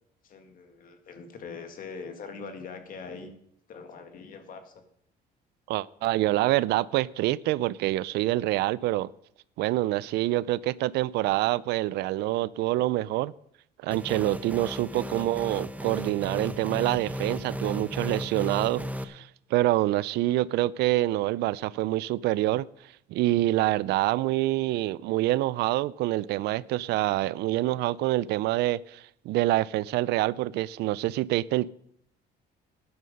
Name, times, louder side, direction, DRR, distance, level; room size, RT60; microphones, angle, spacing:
voice 1, 0.2-3.3 3.7-4.8, left 5 dB, 55° left, 2.0 m, -42 dB
voice 2, 5.7-9.1 9.6-13.3 13.8-22.7 23.1-31.7, right 16 dB, 80° right, 0.4 m, -26 dB
sound 1, 13.9-19.0, equal, 10° right, 0.8 m, -35 dB
12.5 x 9.6 x 5.4 m
cardioid pair, 110°, 17 cm